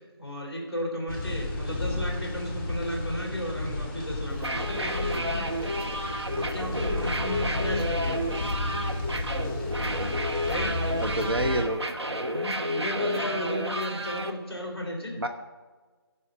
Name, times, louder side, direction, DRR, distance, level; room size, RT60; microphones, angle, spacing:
voice 1, 0.2-8.2 10.4-11.0 12.3-15.1, equal, 10° right, -8 dB, 2.5 m, -34 dB
sound 1, 1.1-11.6, left 2 dB, 30° left, 2.3 m, -32 dB
sound 2, 4.3-14.3, equal, 85° right, 1.2 m, -31 dB
voice 2, 9.8-10.1 11.0-11.8 13.0-13.3 15.2-15.3, right 1 dB, 65° right, 5 dB, 0.9 m, -29 dB
16.5 x 5.7 x 5.3 m, 1.4 s
figure-of-eight pair, 165°, 14 cm